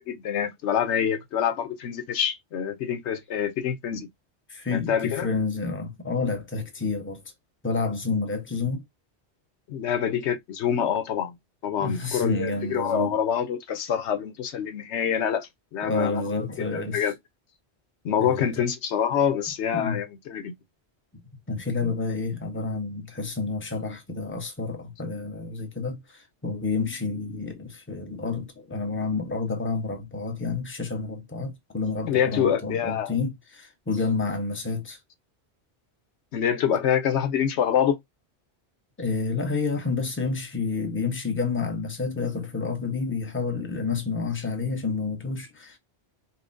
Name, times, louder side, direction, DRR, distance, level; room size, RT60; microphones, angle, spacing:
voice 1, 0.1-4.1 4.7-5.3 9.7-11.4 11.6-16.2 16.6-17.1 18.0-20.5 32.1-33.1 36.3-38.0, left 8 dB, 85° left, 1.0 m, -26 dB
voice 2, 4.5-7.2 7.6-8.8 11.8-13.2 15.8-17.1 18.2-18.5 19.7-20.0 21.5-35.0 39.0-45.8, left 4 dB, 10° left, 0.8 m, -29 dB
5.6 x 2.1 x 2.6 m
omnidirectional pair, 1.1 m